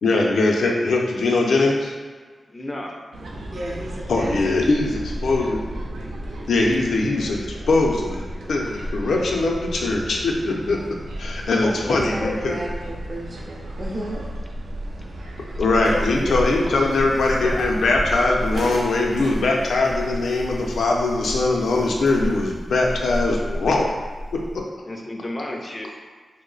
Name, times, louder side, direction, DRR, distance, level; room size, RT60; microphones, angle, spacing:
voice 1, 0.0-1.9 4.1-5.6 6.5-8.2 8.5-10.8 11.2-12.6 15.6-23.9 24.3-24.6, left 2 dB, 90° left, 0 dB, 0.4 m, -21 dB
voice 2, 2.5-3.0 11.6-12.4 15.9-17.7 24.8-25.9, left 1 dB, 20° left, 0 dB, 0.3 m, -31 dB
sound 1, 3.1-18.6, right 1 dB, 90° right, 0.4 m, -33 dB
voice 3, 3.5-4.4 4.7-4.8 11.9-14.3, right 1 dB, 35° right, -4 dB, 0.5 m, -33 dB
sound 2, 15.7-24.7, equal, 55° right, 0.8 m, -32 dB
2.9 x 2.0 x 3.8 m, 1.5 s
wide cardioid pair, 115°, 0 cm